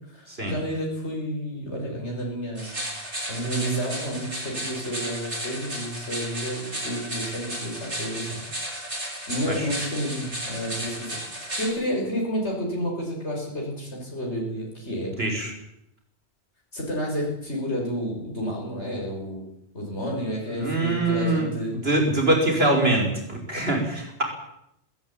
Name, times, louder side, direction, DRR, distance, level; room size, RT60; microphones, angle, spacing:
voice 1, 0.1-2.8 3.3-9.0 9.3-15.1 16.7-19.4 19.7-21.8, equal, 75° left, -2 dB, 6.2 m, -30 dB
sound 1, 2.6-11.7, right 1 dB, 80° right, 7.0 m, -34 dB
voice 2, 15.2-15.5 20.5-21.5 21.8-24.2, right 2 dB, 60° right, 3 dB, 5.6 m, -23 dB
19.5 x 18.0 x 8.7 m, 0.80 s
omnidirectional pair, 1.2 m